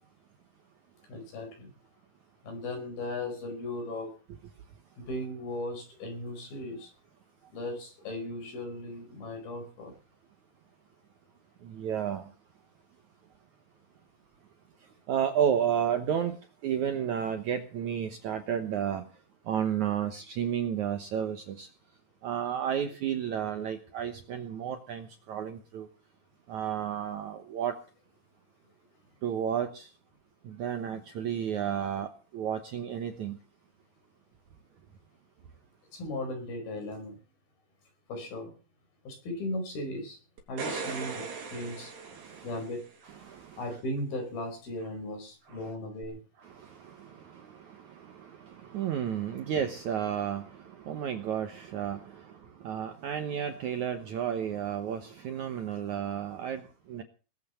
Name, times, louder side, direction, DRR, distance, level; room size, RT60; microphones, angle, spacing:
voice 1, 1.1-1.7 2.4-4.1 5.0-6.9 7.5-9.9 35.9-37.2 38.1-38.5 39.1-40.2 40.5-41.9 42.4-42.9 43.6-46.2, left 1 dB, 65° left, 5 dB, 6.9 m, -37 dB
voice 2, 11.6-12.3 15.1-16.4 16.6-19.0 19.5-21.7 22.2-25.9 26.5-27.8 29.2-29.9 30.4-33.4 42.0-42.5 43.2-43.8 45.5-45.6 46.4-57.0, right 9 dB, 65° right, 7 dB, 2.0 m, -32 dB
sound 1, 40.4-42.9 46.0-46.1, right 4 dB, 85° right, 5.1 m, -38 dB
19.5 x 8.7 x 7.0 m, 0.36 s
omnidirectional pair, 4.7 m